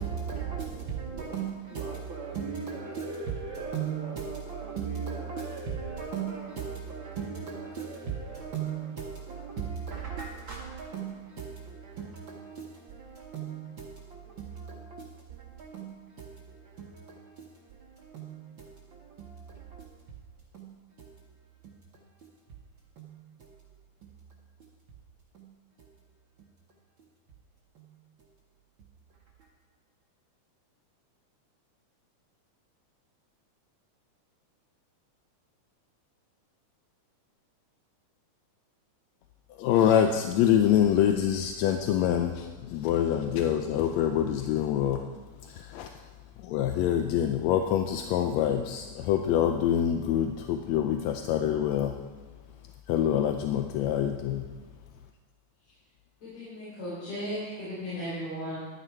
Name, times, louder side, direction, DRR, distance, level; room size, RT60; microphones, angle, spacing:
voice 1, 0.0-20.0 20.5-21.1 21.6-21.8 22.2-22.3 23.0-23.5 24.0-24.1 24.6-24.7 25.3-25.9 26.4-26.5 27.7-28.3 28.8-28.9 29.4-29.5, right 6 dB, 70° right, 1.1 m, -38 dB
voice 2, 39.6-45.0 45.5-45.9 46.4-51.9 52.9-54.5, left 9 dB, 80° left, 1.6 m, -25 dB
voice 3, 56.2-58.6, equal, 60° left, 5.2 m, -36 dB
12.5 x 9.2 x 4.5 m
omnidirectional pair, 3.5 m